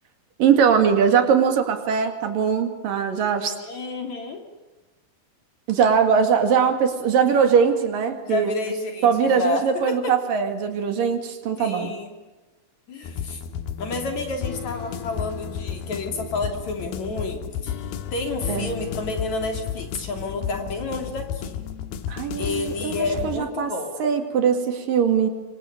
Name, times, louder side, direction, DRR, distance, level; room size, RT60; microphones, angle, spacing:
voice 1, 0.4-3.6 5.7-8.5 9.0-11.9 18.5-18.7 22.1-23.7 24.0-25.3, right 7 dB, 70° right, 7 dB, 3.9 m, -21 dB
voice 2, 3.6-4.4 8.2-10.1 11.6-12.1 12.9-13.4 13.8-17.9 18.1-21.6 22.4-23.9, left 3 dB, 50° left, 4 dB, 4.1 m, -30 dB
sound 1, 13.0-23.4, left 8 dB, 85° left, 3.2 m, -33 dB
27.5 x 24.5 x 6.8 m, 1.1 s
omnidirectional pair, 4.2 m